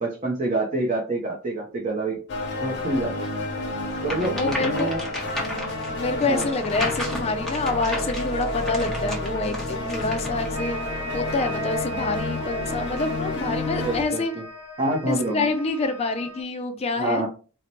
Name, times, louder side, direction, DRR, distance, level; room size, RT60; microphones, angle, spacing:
voice 1, 0.0-2.2 2.6-3.3 4.0-5.0 6.3-6.5 13.8-14.4 14.8-15.5 17.0-17.3, right 2 dB, 35° right, -2 dB, 0.6 m, -27 dB
sound 1, 2.3-14.0, left 2 dB, 55° left, 0.8 m, -30 dB
sound 2, 4.0-10.5, left 1 dB, ahead, 0.8 m, -34 dB
voice 2, 4.3-4.9 5.9-10.8 11.1-14.3 15.1-17.2, left 3 dB, 30° left, 7 dB, 0.4 m, -27 dB
sound 3, 10.5-16.4, left 1 dB, 80° right, 1.1 m, -38 dB
4.0 x 2.1 x 2.9 m, 0.37 s
head